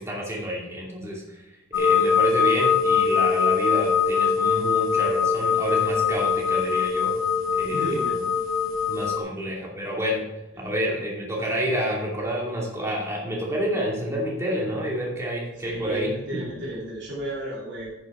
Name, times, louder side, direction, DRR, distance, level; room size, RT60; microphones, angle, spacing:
voice 1, 0.0-1.4 1.7-7.1 7.5-8.0 8.9-10.2 10.6-16.4, equal, 15° right, -3 dB, 2.5 m, -29 dB
sound 1, 1.7-9.2, left 6 dB, 75° left, 1.0 m, -22 dB
voice 2, 7.7-8.2 10.5-10.7 15.6-17.9, right 1 dB, 60° right, -7 dB, 2.8 m, -33 dB
10.5 x 6.5 x 4.6 m, 1.1 s
head